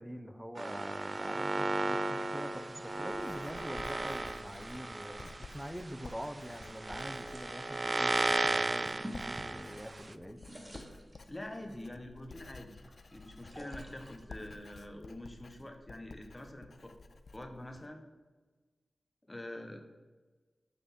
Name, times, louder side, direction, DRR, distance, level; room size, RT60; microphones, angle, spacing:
voice 1, 0.0-10.5, equal, 5° right, 7 dB, 0.7 m, -45 dB
sound 1, 0.6-10.1, right 2 dB, 40° right, 0.3 m, -35 dB
Writing, 2.5-17.9, left 3 dB, 70° left, 0.3 m, -53 dB
sound 2, 3.9-7.5 8.3-10.0 10.2-11.7 12.3-15.7, equal, 25° right, 1.2 m, -52 dB
voice 2, 11.3-12.9 13.1-17.0 17.3-18.0 19.3-19.8, left 1 dB, 25° left, 5 dB, 1.1 m, -45 dB
8.4 x 4.0 x 3.7 m, 1.3 s
cardioid pair, 50°, 0 cm